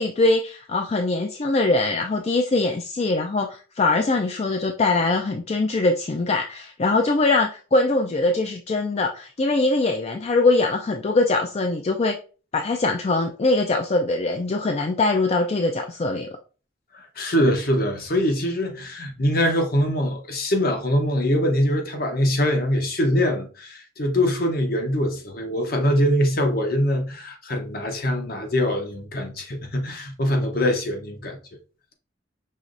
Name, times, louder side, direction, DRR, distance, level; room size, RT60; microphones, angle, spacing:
voice 1, 0.0-12.2 12.5-16.3, left 2 dB, 35° left, 0.4 m, -22 dB
voice 2, 16.9-31.4, equal, 50° left, 0.9 m, -23 dB
5.6 x 3.0 x 2.5 m
head